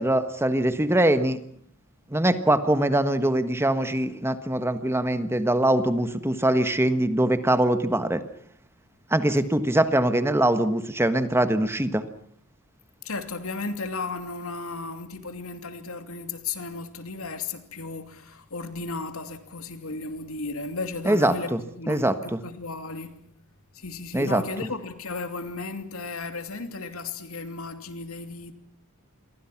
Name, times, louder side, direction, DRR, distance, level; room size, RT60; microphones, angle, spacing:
voice 1, 0.0-1.4 2.1-8.2 9.1-12.0 21.0-21.6 21.9-22.4 24.1-24.4, right 1 dB, 10° right, 1.4 m, -23 dB
voice 2, 13.0-23.2 23.7-28.5, left 3 dB, 80° left, 2.8 m, -35 dB
28.0 x 23.5 x 6.0 m
head